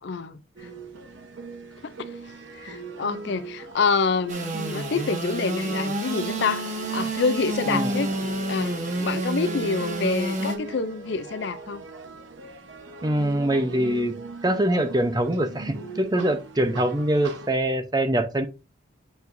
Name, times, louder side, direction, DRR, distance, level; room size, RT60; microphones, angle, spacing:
voice 1, 0.0-0.7 1.8-8.1 8.5-11.8, left 4 dB, 60° left, 0.4 m, -27 dB
sound 1, 0.6-17.5, right 3 dB, 70° right, 1.0 m, -40 dB
Engine / Sawing, 4.3-10.6, right 1 dB, 35° right, 1.1 m, -29 dB
voice 2, 13.0-14.1 14.4-18.5, right 1 dB, 20° right, 0.7 m, -24 dB
7.9 x 4.7 x 2.6 m
head